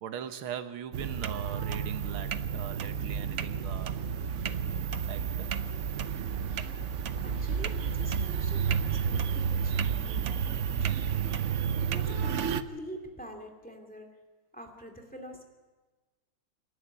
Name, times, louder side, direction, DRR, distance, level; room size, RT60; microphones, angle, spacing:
voice 1, 0.0-4.0 5.0-5.5, right 9 dB, 90° right, 9 dB, 1.9 m, -40 dB
sound 1, 0.9-12.6, right 7 dB, 70° right, 0.7 m, -31 dB
voice 2, 7.2-14.1 14.5-15.4, equal, 5° left, 4 dB, 2.4 m, -46 dB
26.5 x 11.0 x 9.6 m, 1.3 s
omnidirectional pair, 2.2 m